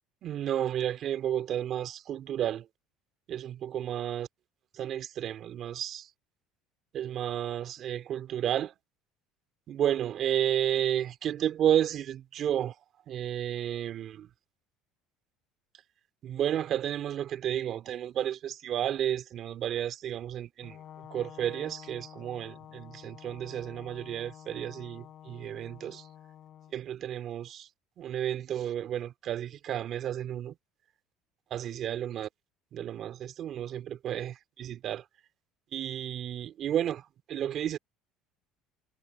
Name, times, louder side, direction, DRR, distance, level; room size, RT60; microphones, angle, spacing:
voice 1, 0.2-2.7 3.3-4.3 4.8-6.1 6.9-8.7 9.7-12.7 13.1-14.3 16.2-20.8 21.1-26.0 26.7-27.7 28.0-30.5 31.5-32.3 32.7-35.0 35.7-37.8, right 10 dB, 50° right, 2.5 m, -32 dB
Brass instrument, 20.6-26.7, left 10 dB, 45° left, 5.0 m, -50 dB
cardioid pair, 120°, 0 cm